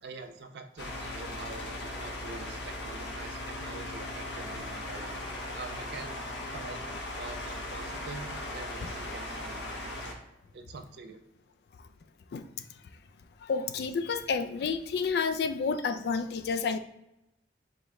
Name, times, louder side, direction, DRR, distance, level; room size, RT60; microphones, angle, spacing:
voice 1, 0.0-6.2 6.5-6.8 7.2-10.2 10.5-11.2, right 3 dB, 65° right, 7 dB, 0.4 m, -45 dB
sound 1, 0.8-10.1, left 1 dB, 80° left, 0.8 m, -38 dB
voice 2, 13.4-16.8, left 5 dB, 60° left, 8 dB, 0.3 m, -30 dB
4.9 x 2.2 x 3.5 m, 0.87 s
head